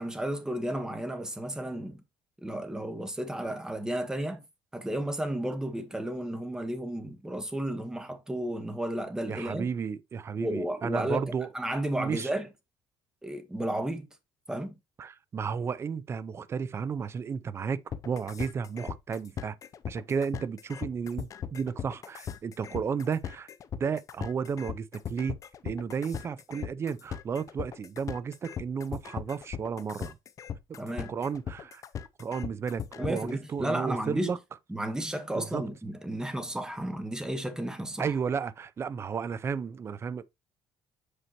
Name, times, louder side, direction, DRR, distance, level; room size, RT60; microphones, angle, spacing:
voice 1, 0.0-2.0 2.4-4.4 4.7-9.7 10.4-12.5 13.2-14.1 14.5-14.7 30.8-31.2 33.0-34.3 34.7-38.1, right 1 dB, 5° right, 1.3 m, -33 dB
voice 2, 9.3-11.5 12.0-12.3 15.0-19.6 19.9-23.5 23.8-25.4 25.6-30.2 31.1-31.8 32.2-34.4 35.4-35.6 38.0-40.2, right 6 dB, 30° right, 0.5 m, -33 dB
sound 1, 17.9-33.3, left 8 dB, 35° left, 0.6 m, -38 dB
8.0 x 5.6 x 3.0 m
cardioid pair, 140°, 9 cm